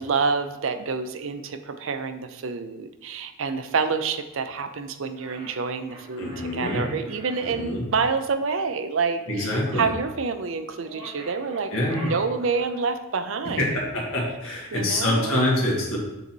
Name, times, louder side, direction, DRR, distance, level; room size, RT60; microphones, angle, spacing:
voice 1, 0.0-11.7 12.0-13.7 14.7-15.6, right 5 dB, 65° right, 8 dB, 0.5 m, -28 dB
sound 1, 5.1-7.6 10.8-12.9, right 2 dB, 80° right, 1.6 m, -42 dB
voice 2, 6.2-6.9 7.4-7.9 9.3-9.9 11.7-12.1 13.6-16.0, left 1 dB, 75° left, -3 dB, 2.0 m, -25 dB
6.9 x 4.0 x 4.5 m, 0.95 s
head